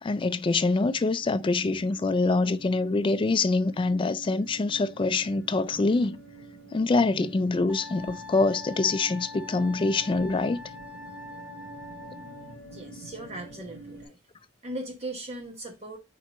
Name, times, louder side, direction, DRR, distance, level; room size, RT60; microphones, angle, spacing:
voice 1, 0.0-6.2 6.7-10.6, left 3 dB, 25° left, 0.3 m, -25 dB
sound 1, 0.9-14.1, right 3 dB, 80° right, 2.5 m, -47 dB
Wind instrument woodwind instrument, 7.7-12.6, left 3 dB, 5° right, 0.8 m, -44 dB
voice 2, 12.7-14.2 14.6-16.0, right 1 dB, 30° right, 1.0 m, -38 dB
4.5 x 4.4 x 4.9 m
head